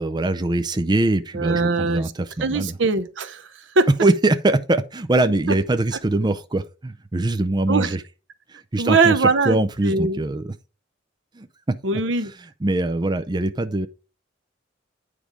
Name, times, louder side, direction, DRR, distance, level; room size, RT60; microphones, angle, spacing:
voice 1, 0.0-2.7 4.0-8.0 8.5-10.5 11.3-12.0 12.6-13.9, right 2 dB, 20° right, 0.5 m, -22 dB
voice 2, 1.3-2.1 2.4-3.5 3.8-3.9 5.5-5.6 7.7-7.9 8.8-10.2 11.8-12.3, right 3 dB, 65° right, 0.8 m, -21 dB
9.3 x 5.0 x 4.8 m
head